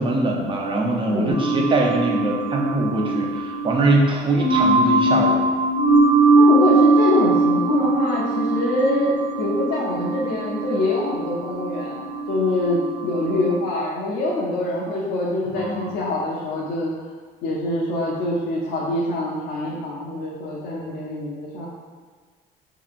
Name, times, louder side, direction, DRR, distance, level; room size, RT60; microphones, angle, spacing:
voice 1, 0.0-5.4 15.6-15.9, right 2 dB, 30° right, 0 dB, 0.6 m, -22 dB
voice 2, 1.1-1.6 6.3-16.9 17.4-21.7, left 2 dB, 85° left, -6 dB, 0.6 m, -24 dB
sound 1, 1.3-13.5, right 2 dB, 50° right, 1.1 m, -21 dB
4.5 x 2.8 x 2.4 m, 1.5 s
cardioid pair, 110°, 17 cm